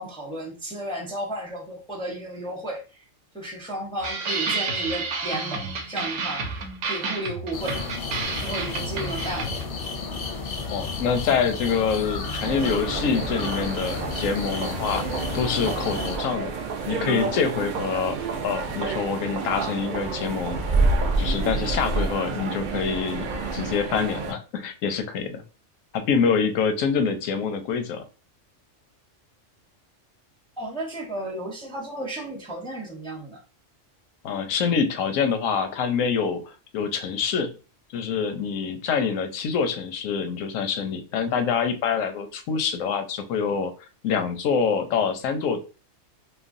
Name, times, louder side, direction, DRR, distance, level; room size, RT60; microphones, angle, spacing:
voice 1, 0.0-3.1 3.3-6.5 6.8-7.8 8.4-9.6 30.6-33.4, right 1 dB, 5° left, -2 dB, 0.4 m, -33 dB
sound 1, 4.0-9.7, right 4 dB, 85° right, 1.0 m, -30 dB
sound 2, 7.5-16.2, left 4 dB, 60° left, 0.6 m, -32 dB
voice 2, 10.7-15.0 15.3-16.5 16.9-18.2 18.4-20.6 21.2-25.4 25.9-28.0 34.2-37.5 37.9-43.7 44.0-45.6, left 6 dB, 90° left, 7 dB, 1.0 m, -26 dB
sound 3, 12.4-24.3, right 3 dB, 65° right, 0.4 m, -28 dB
3.2 x 2.1 x 2.5 m, 0.34 s
omnidirectional pair, 1.3 m